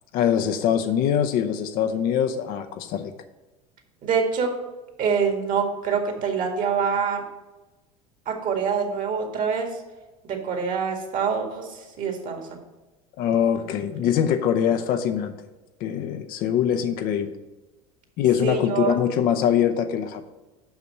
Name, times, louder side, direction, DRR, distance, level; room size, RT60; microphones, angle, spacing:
voice 1, 0.1-3.1 13.2-15.4 15.8-17.4 18.2-20.3, left 9 dB, 55° left, 8 dB, 0.7 m, -23 dB
voice 2, 4.0-4.5 5.0-7.2 8.3-9.7 10.2-12.5 18.4-18.9, right 6 dB, 45° right, 3 dB, 1.9 m, -25 dB
6.0 x 5.7 x 6.4 m, 1.1 s
hypercardioid pair, 80°, 18 cm